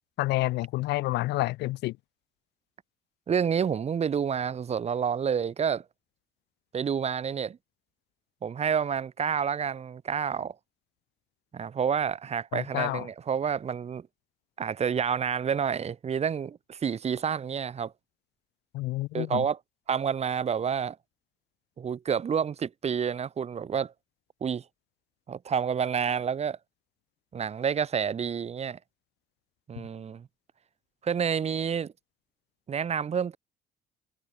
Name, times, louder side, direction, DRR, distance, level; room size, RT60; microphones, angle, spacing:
voice 1, 0.2-2.0 12.5-13.1 18.7-19.5, left 19 dB, 85° left, 2.2 m, -29 dB
voice 2, 3.3-5.8 6.7-7.6 8.4-10.5 11.5-14.1 14.6-17.9 19.1-19.6 19.9-21.0 21.8-23.9 24.4-24.6 25.3-26.6 27.3-28.8 29.7-30.3 31.0-31.9 32.7-33.4, right 7 dB, 40° right, 2.7 m, -29 dB
cardioid pair, 110°, 17 cm